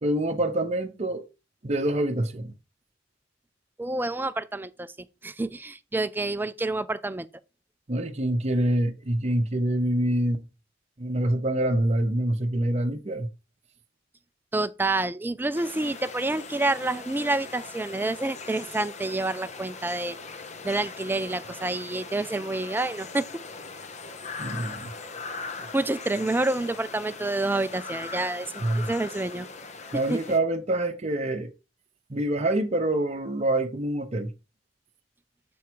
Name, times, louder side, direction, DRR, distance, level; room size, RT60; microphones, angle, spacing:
voice 1, 0.0-1.3 1.6-2.5 7.9-10.5 11.0-13.3 24.4-24.9 25.6-25.7 28.6-28.9 29.9-31.5 32.1-34.3, right 1 dB, 35° right, 0.8 m, -26 dB
voice 2, 3.8-4.9 5.2-7.3 14.5-20.2 20.6-23.3 25.7-28.5 28.7-29.5 30.1-30.2, right 2 dB, 10° right, 0.4 m, -28 dB
sound 1, 15.5-30.4, left 4 dB, 40° left, 0.8 m, -40 dB
7.1 x 4.7 x 4.6 m
head